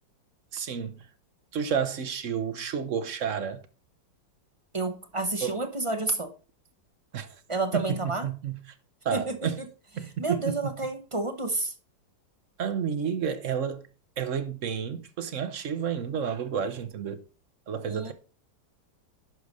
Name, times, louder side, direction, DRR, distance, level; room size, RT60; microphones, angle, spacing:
voice 1, 0.5-1.0 1.5-3.6 5.4-5.5 7.1-7.3 7.7-8.0 8.2-8.6 9.0-9.6 10.0-10.5 12.6-13.8 14.2-17.2 17.7-18.1, right 7 dB, 50° right, 1.0 m, -30 dB
voice 2, 4.7-6.3 7.5-8.3 9.1-9.5 10.0-11.7 17.9-18.1, right 2 dB, 30° right, 0.6 m, -30 dB
11.5 x 5.1 x 4.0 m
omnidirectional pair, 2.0 m